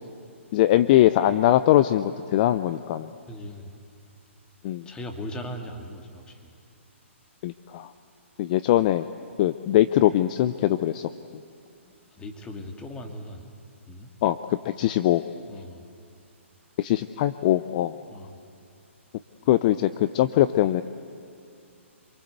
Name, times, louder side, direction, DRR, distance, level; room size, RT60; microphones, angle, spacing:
voice 1, 0.5-3.1 4.6-4.9 7.4-7.9 8.4-9.0 9.4-11.1 14.2-15.2 16.8-17.9 19.5-20.8, left 13 dB, 40° left, 13 dB, 0.6 m, -21 dB
voice 2, 3.3-3.7 4.9-6.5 11.9-13.5 13.9-14.1 15.5-15.9 18.1-18.4, left 1 dB, 10° left, 3 dB, 2.4 m, -39 dB
27.5 x 23.0 x 8.1 m, 2.4 s
hypercardioid pair, 140°, 7 cm